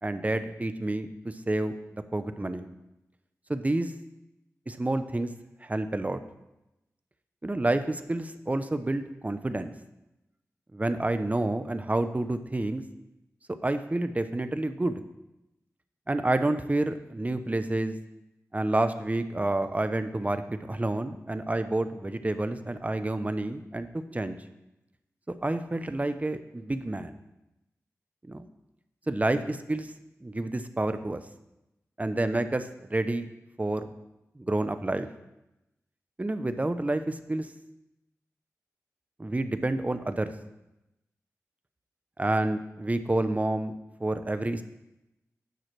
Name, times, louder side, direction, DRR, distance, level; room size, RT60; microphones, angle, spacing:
voice 1, 0.0-2.7 3.5-3.9 4.7-5.3 5.6-6.2 7.4-9.7 10.7-12.8 13.6-15.0 16.1-18.0 18.5-24.4 25.4-27.2 28.3-28.5 29.1-29.9 30.2-31.2 32.0-33.3 33.6-33.9 34.4-35.1 36.2-37.5 39.2-40.3 42.2-44.6, right 2 dB, 25° right, 10 dB, 0.6 m, -29 dB
9.1 x 5.8 x 3.2 m, 0.93 s
cardioid pair, 50°, 6 cm